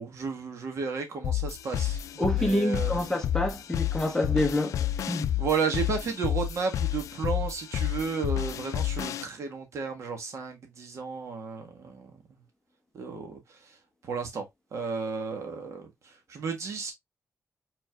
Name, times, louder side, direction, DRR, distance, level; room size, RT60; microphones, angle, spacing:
voice 1, 0.0-2.0 2.3-2.9 5.4-12.4 12.9-13.8 14.0-14.5 14.7-16.9, right 5 dB, 65° right, 1.7 m, -33 dB
sound 1, 1.2-9.2, left 11 dB, 80° left, 0.4 m, -30 dB
voice 2, 2.2-5.3, left 1 dB, 10° left, 1.2 m, -27 dB
4.7 x 4.4 x 2.4 m
cardioid pair, 120°, 5 cm